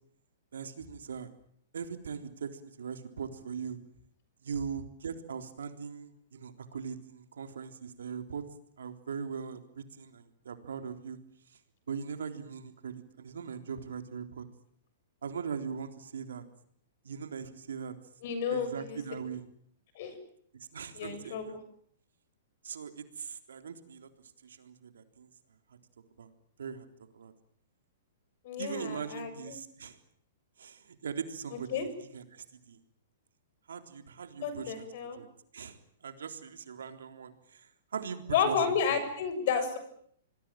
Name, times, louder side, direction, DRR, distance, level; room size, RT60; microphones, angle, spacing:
voice 1, 0.5-1.3 1.7-3.8 4.4-8.4 8.8-11.2 11.9-14.4 15.2-16.4 17.0-17.9 18.5-19.4 20.7-21.6 22.6-24.1 24.4-25.3 25.7-25.8 26.2-26.3 26.6-26.9 27.1-27.3 28.6-30.0 30.6-32.8 33.7-34.9 35.1-35.3 35.5-38.6, right 6 dB, 80° right, 8 dB, 3.7 m, -40 dB
voice 2, 18.2-19.0 20.0-20.2 20.9-21.6 28.4-29.6 31.7-31.9 34.4-35.2 38.3-39.8, left 6 dB, 55° left, 11 dB, 7.2 m, -31 dB
27.0 x 21.0 x 9.1 m, 0.66 s
hypercardioid pair, 120°, 0 cm